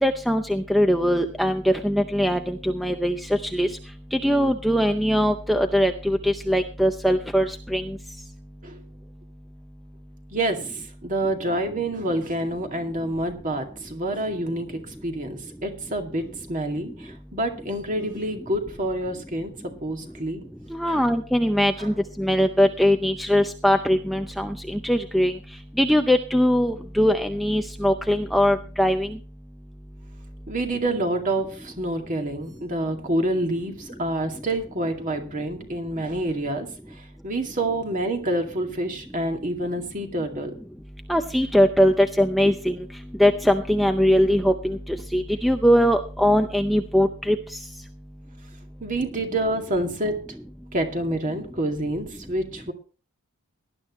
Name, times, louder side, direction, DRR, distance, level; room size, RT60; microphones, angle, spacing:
voice 1, 0.0-3.2 3.4-3.7 4.1-7.8 20.7-25.3 25.8-29.1 41.1-42.7 43.2-47.4, equal, ahead, 7 dB, 0.6 m, -21 dB
voice 2, 10.3-19.5 19.8-20.4 20.9-21.1 21.8-21.9 30.5-40.5 48.8-50.1 50.7-52.7, right 1 dB, 35° right, 4 dB, 2.3 m, -28 dB
18.5 x 11.5 x 3.1 m, 0.37 s
head